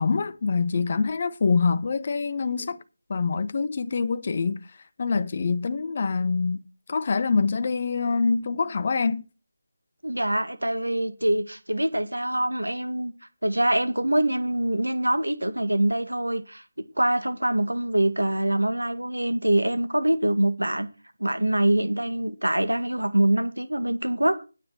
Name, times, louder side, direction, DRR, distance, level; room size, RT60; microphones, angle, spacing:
voice 1, 0.0-2.8 3.1-4.6 5.0-9.3, left 4 dB, 40° left, 0.8 m, -25 dB
voice 2, 10.0-13.1 13.4-16.6 17.0-20.9 21.2-24.4, right 1 dB, 90° right, 1.9 m, -24 dB
9.6 x 6.3 x 7.5 m
figure-of-eight pair, 160°, 0 cm